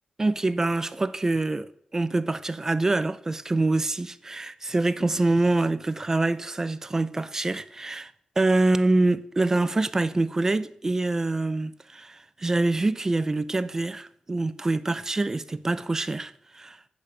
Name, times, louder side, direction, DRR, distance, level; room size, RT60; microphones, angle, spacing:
voice 1, 0.2-8.1 8.4-16.8, right 2 dB, 20° right, 0.4 m, -25 dB
8.6 x 5.1 x 7.1 m
wide cardioid pair, 140°, 2 cm